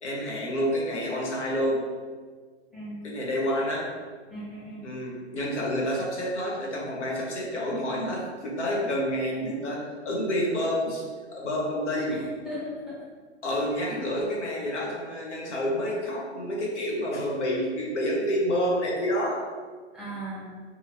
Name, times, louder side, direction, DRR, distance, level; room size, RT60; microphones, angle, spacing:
voice 1, 0.0-1.8 3.0-3.9 4.8-11.0 11.3-12.1 13.4-19.4, equal, 85° left, -2 dB, 0.9 m, -28 dB
voice 2, 4.3-4.9 12.1-13.0 13.8-13.9 19.9-20.5, equal, ahead, -8 dB, 0.7 m, -37 dB
2.7 x 2.6 x 2.9 m, 1.5 s
hypercardioid pair, 130°, 34 cm